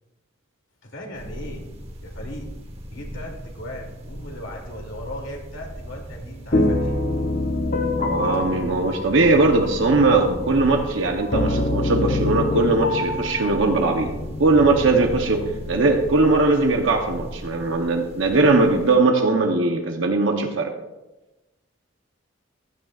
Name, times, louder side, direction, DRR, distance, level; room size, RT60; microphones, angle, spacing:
voice 1, 0.8-1.6 2.0-2.5 2.9-7.0, equal, 75° left, 0 dB, 2.7 m, -37 dB
sound 1, 1.1-19.0, equal, 30° right, 1.3 m, -39 dB
sound 2, 6.5-16.1, left 2 dB, 40° left, 0.9 m, -26 dB
voice 2, 8.0-14.1 14.4-20.7, right 3 dB, 75° right, 3 dB, 0.9 m, -20 dB
15.0 x 11.5 x 2.5 m, 1.0 s
head